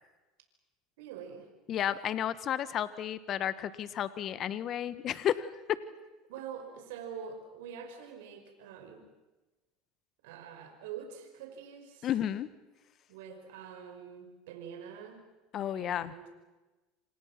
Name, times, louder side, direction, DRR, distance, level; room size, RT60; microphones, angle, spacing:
voice 1, 1.0-1.5 6.3-9.0 10.2-12.1 13.1-15.2 15.7-16.3, right 7 dB, 80° right, 5 dB, 5.2 m, -45 dB
voice 2, 1.7-5.8 12.0-12.5 15.5-16.1, left 10 dB, 50° left, 14 dB, 1.4 m, -32 dB
28.5 x 27.0 x 6.1 m, 1.1 s
hypercardioid pair, 90°, 0 cm